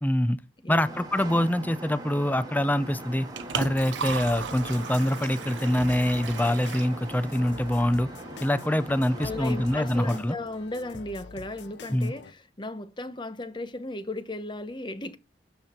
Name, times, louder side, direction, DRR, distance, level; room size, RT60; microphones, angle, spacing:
voice 1, 0.0-0.4 0.7-3.3 3.6-8.1 8.4-10.4 11.9-12.1, left 1 dB, 10° left, 0.5 m, -25 dB
sound 1, 0.8-10.2, right 1 dB, 20° right, 2.3 m, -41 dB
Liquid, 3.0-8.0, right 6 dB, 80° right, 0.8 m, -37 dB
sound 2, 3.4-12.3, left 4 dB, 70° left, 0.7 m, -45 dB
voice 2, 9.2-15.2, left 2 dB, 25° left, 0.9 m, -36 dB
12.5 x 7.3 x 4.4 m
head